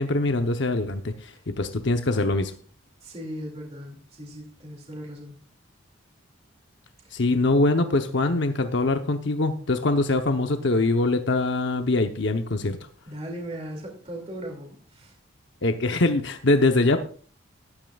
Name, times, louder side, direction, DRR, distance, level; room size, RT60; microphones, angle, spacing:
voice 1, 0.0-2.5 7.1-12.8 15.6-17.0, left 2 dB, 60° left, 6 dB, 0.9 m, -23 dB
voice 2, 3.0-5.4 7.0-7.1 13.1-15.2, equal, 30° right, 1 dB, 2.4 m, -38 dB
13.0 x 12.5 x 2.4 m, 0.42 s
head